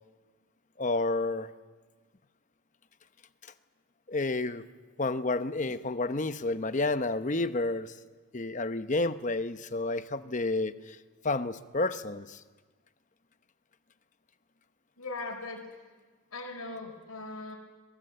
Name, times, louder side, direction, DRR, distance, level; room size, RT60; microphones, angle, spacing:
voice 1, 0.8-1.5 4.1-4.7 5.0-8.0 8.3-11.0 11.2-12.4, left 2 dB, 35° left, 11 dB, 0.9 m, -30 dB
voice 2, 15.0-15.6 16.3-17.6, left 3 dB, 75° left, 0 dB, 5.0 m, -39 dB
24.5 x 22.5 x 7.9 m, 1.3 s
head